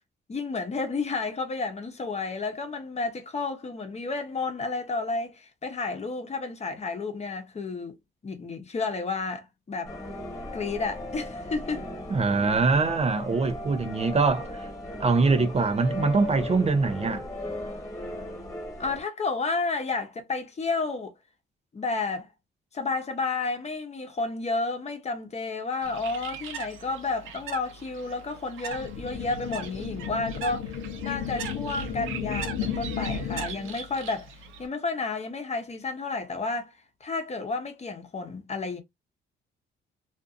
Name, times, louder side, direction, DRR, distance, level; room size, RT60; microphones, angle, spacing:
voice 1, 0.3-7.9 8.2-9.9 10.5-11.8 18.8-21.1 21.7-22.3 22.7-34.3 34.6-36.7 37.0-38.8, left 3 dB, 35° left, 0.8 m, -31 dB
sound 1, 9.8-19.0, left 1 dB, 15° left, 1.4 m, -37 dB
voice 2, 12.1-14.7 15.0-17.3, right 4 dB, 35° right, 0.5 m, -23 dB
Bird, 25.8-34.7, right 7 dB, 85° right, 0.7 m, -41 dB
sound 2, 28.7-33.7, left 7 dB, 85° left, 0.7 m, -34 dB
2.5 x 2.5 x 2.4 m
cardioid pair, 90°, 20 cm